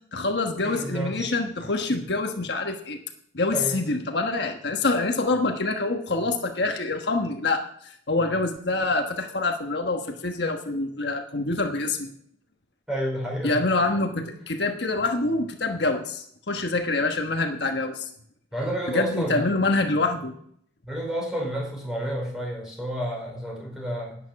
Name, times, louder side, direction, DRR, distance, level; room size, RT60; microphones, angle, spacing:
voice 1, 0.1-3.0 3.3-12.1 13.4-18.1 18.9-20.3, left 3 dB, 70° left, 4 dB, 1.3 m, -26 dB
voice 2, 0.6-1.3 1.6-1.7 3.5-3.8 12.9-13.6 18.5-19.6 20.8-24.2, equal, 5° right, -3 dB, 4.7 m, -30 dB
11.0 x 9.3 x 5.9 m, 0.65 s
head